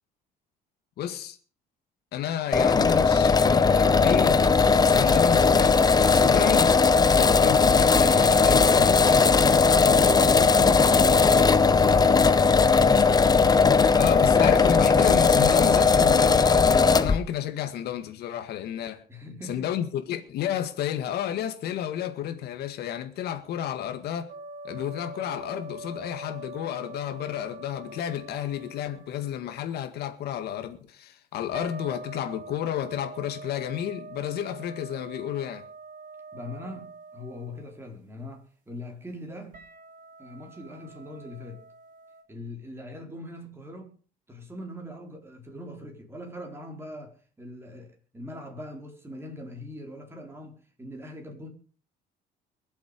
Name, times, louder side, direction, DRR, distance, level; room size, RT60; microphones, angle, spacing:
voice 1, 1.0-1.4 2.1-4.4 4.8-6.8 7.1-9.2 13.9-19.0 19.4-24.3 24.6-35.7, left 10 dB, 75° left, 2.0 m, -31 dB
sound 1, 2.5-17.2, left 5 dB, 25° left, 0.9 m, -18 dB
voice 2, 19.1-19.7 36.3-39.6 40.2-41.6 42.3-43.9 44.3-51.5, equal, 15° right, 4.5 m, -41 dB
sound 2, 24.3-29.6 31.5-37.8 39.5-42.2, right 3 dB, 50° right, 4.6 m, -44 dB
22.5 x 7.9 x 5.4 m
cardioid pair, 110°, 17 cm